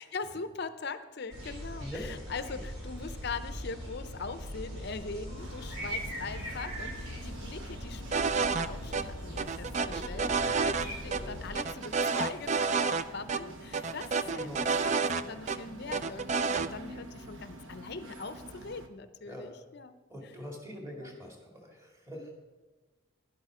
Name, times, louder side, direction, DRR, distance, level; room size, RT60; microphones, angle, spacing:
voice 1, 0.0-20.0 21.0-21.1 22.1-22.3, left 4 dB, 50° left, 11 dB, 0.6 m, -41 dB
sound 1, 1.3-11.5, equal, 90° right, 3.9 m, -41 dB
sound 2, 5.4-18.9, right 1 dB, 70° right, 1.1 m, -48 dB
sound 3, 8.1-8.7 8.9-9.0 9.4-10.9 11.1-11.2 11.5-13.0 13.3-13.4 13.7-15.6 15.9-16.7, right 5 dB, 35° right, 0.4 m, -29 dB
voice 2, 9.9-10.5 11.1-11.3 14.3-14.6 15.9-16.0 19.2-19.5 20.1-22.3, equal, 15° right, 0 dB, 2.4 m, -44 dB
11.5 x 11.5 x 4.9 m, 1.2 s
head